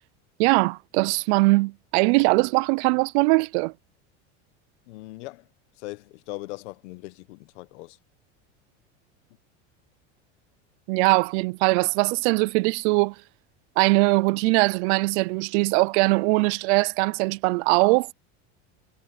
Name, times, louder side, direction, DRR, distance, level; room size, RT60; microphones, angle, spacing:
voice 1, 0.4-3.7 10.9-13.1 13.8-18.1, right 26 dB, 65° right, 0.8 m, -21 dB
voice 2, 4.9-5.5 5.8-8.0, left 22 dB, 75° left, 1.2 m, -39 dB
supercardioid pair, 125°, 35 cm